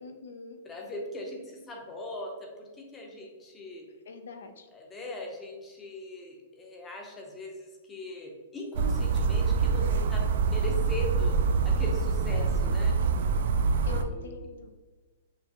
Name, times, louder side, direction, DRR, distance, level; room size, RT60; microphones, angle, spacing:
voice 1, 0.0-0.6 4.1-4.7 13.8-14.8, left 4 dB, 85° left, 7 dB, 0.5 m, -43 dB
voice 2, 0.6-2.3 2.6-3.9 4.7-11.4 11.6-13.0 13.9-14.5, left 1 dB, 10° left, 1 dB, 0.6 m, -40 dB
sound 1, 8.7-14.0, right 5 dB, 60° right, 0.3 m, -25 dB
5.6 x 2.4 x 2.9 m, 1.3 s
hypercardioid pair, 170°, 0 cm